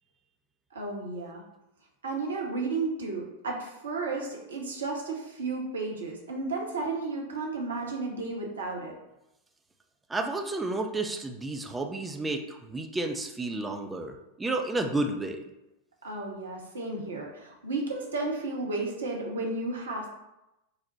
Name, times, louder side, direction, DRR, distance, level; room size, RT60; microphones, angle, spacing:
voice 1, 0.7-1.5 2.0-8.9 16.0-20.1, right 3 dB, 70° right, -1 dB, 0.9 m, -33 dB
voice 2, 10.1-15.4, right 2 dB, 10° right, 3 dB, 0.4 m, -31 dB
4.0 x 2.1 x 4.4 m, 0.92 s
figure-of-eight pair, 90°, 0 cm